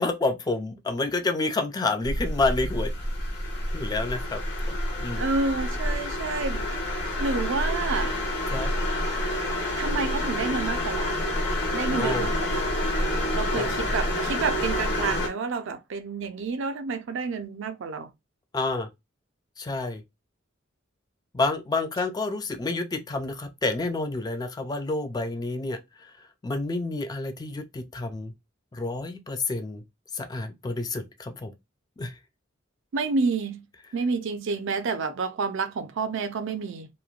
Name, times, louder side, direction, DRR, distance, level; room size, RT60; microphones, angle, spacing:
voice 1, 0.0-2.9 3.7-4.4 4.7-5.2 8.5-8.7 11.9-12.3 13.5-13.7 18.5-18.9 19.6-20.0 21.3-26.1 26.4-28.3 28.7-29.8 30.1-31.5 32.0-32.1, left 3 dB, 20° left, 0.3 m, -29 dB
sound 1, 2.0-15.3, left 1 dB, 60° left, 1.1 m, -28 dB
voice 2, 5.2-6.8 7.2-8.1 9.8-11.2 11.7-12.7 13.3-18.1 32.9-33.6 33.9-36.9, right 4 dB, 65° right, 0.4 m, -29 dB
3.1 x 2.1 x 2.3 m
head